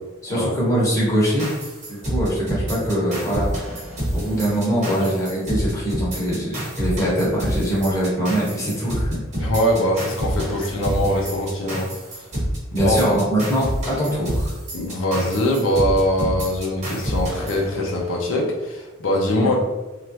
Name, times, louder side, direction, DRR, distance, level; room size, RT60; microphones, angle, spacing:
voice 1, 0.2-1.4 1.9-3.5 4.1-9.2 12.7-14.5 19.4-19.5, right 1 dB, 15° left, -7 dB, 1.0 m, -22 dB
sound 1, 1.4-18.3, equal, 35° right, 0.9 m, -28 dB
voice 2, 9.4-11.9 12.8-13.2 14.7-19.6, left 1 dB, 75° left, -1 dB, 0.6 m, -22 dB
3.1 x 2.4 x 2.7 m, 1.1 s
head